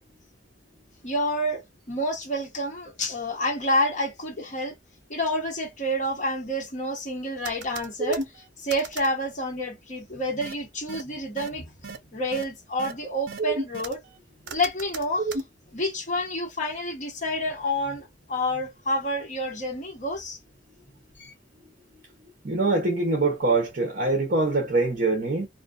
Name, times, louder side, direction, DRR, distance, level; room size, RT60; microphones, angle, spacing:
voice 1, 1.0-4.8 5.1-11.7 12.1-14.0 14.5-15.4 15.7-20.4 21.2-21.3, left 1 dB, 40° left, 1.0 m, -29 dB
sound 1, 7.4-8.2 8.7-9.1 10.4-10.5 10.9-11.0 11.4-11.5 11.8-12.0 12.3-12.4 12.8-12.9 13.3-13.9 14.5-15.4, right 3 dB, 65° right, 0.5 m, -31 dB
voice 2, 22.4-25.5, right 3 dB, 45° right, 0.8 m, -24 dB
2.6 x 2.2 x 2.4 m
head